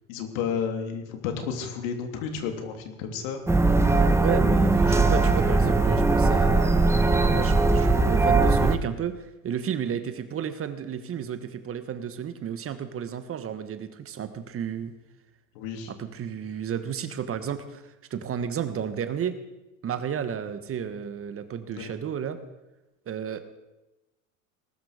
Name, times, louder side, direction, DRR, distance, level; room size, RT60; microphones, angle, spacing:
voice 1, 0.1-3.4 15.5-15.9 21.6-21.9, left 6 dB, 65° left, 5 dB, 3.1 m, -32 dB
sound 1, 3.5-8.8, right 3 dB, 5° right, 1.2 m, -20 dB
voice 2, 3.9-14.9 15.9-19.3 19.8-22.4 23.1-23.4, right 8 dB, 30° right, 10 dB, 1.4 m, -32 dB
19.5 x 12.5 x 5.1 m, 0.99 s
hypercardioid pair, 100°, 42 cm